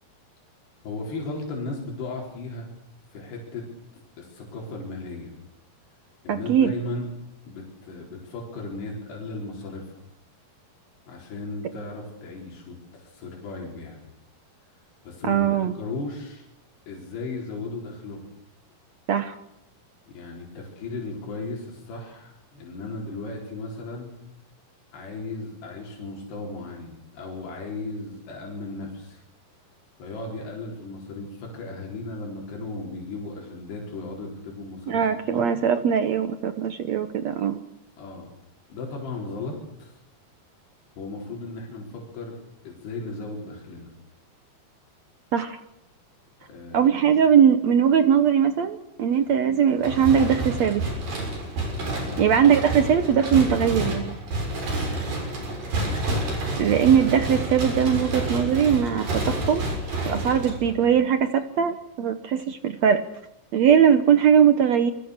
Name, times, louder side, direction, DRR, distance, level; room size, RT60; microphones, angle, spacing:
voice 1, 0.8-2.7 3.1-3.7 4.2-5.4 6.2-7.1 7.4-10.0 11.1-14.1 15.0-15.5 15.7-16.5 16.9-18.2 20.1-24.1 24.9-29.2 30.0-35.5 38.0-38.3 38.7-40.0 41.0-42.4 42.6-43.9 46.4-46.9 52.0-52.3, left 3 dB, 90° left, -1 dB, 6.4 m, -36 dB
voice 2, 6.3-6.7 15.2-15.8 19.1-19.3 34.9-37.6 45.3-45.6 46.7-50.8 52.2-54.2 56.6-59.6 60.1-63.0 63.5-64.9, right 8 dB, 80° right, 10 dB, 1.5 m, -20 dB
sound 1, 49.8-61.0, right 1 dB, 55° right, 8.3 m, -29 dB
27.5 x 24.0 x 6.6 m, 0.82 s
omnidirectional pair, 4.6 m